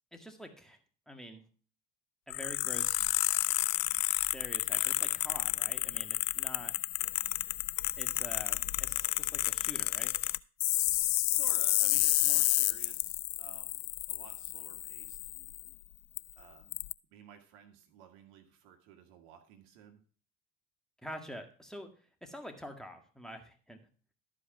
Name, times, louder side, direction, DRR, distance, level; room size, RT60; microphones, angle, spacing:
voice 1, 0.1-0.8 1.1-1.4 2.3-3.0 4.3-6.7 7.9-10.1 21.0-21.9 22.2-23.8, equal, ahead, 5 dB, 1.9 m, -46 dB
sound 1, 2.3-15.7 16.2-16.3 16.7-16.9, left 21 dB, 55° left, 0.5 m, -31 dB
voice 2, 11.3-15.2 16.4-16.8 17.1-20.0, right 8 dB, 70° right, 6 dB, 1.8 m, -54 dB
12.5 x 5.0 x 6.0 m, 0.41 s
hypercardioid pair, 65°, 38 cm